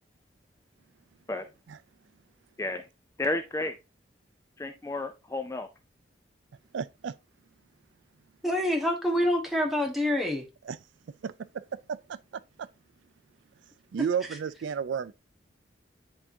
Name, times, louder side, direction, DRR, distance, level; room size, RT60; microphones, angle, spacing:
voice 1, 3.2-3.8 4.6-5.7, left 2 dB, 15° left, 0.4 m, -32 dB
voice 2, 6.7-7.1 10.6-10.8 11.2-11.6 11.9-12.7 13.9-15.1, right 7 dB, 75° right, 0.4 m, -33 dB
voice 3, 8.4-10.4, left 1 dB, ahead, 1.3 m, -26 dB
9.9 x 3.6 x 2.7 m
head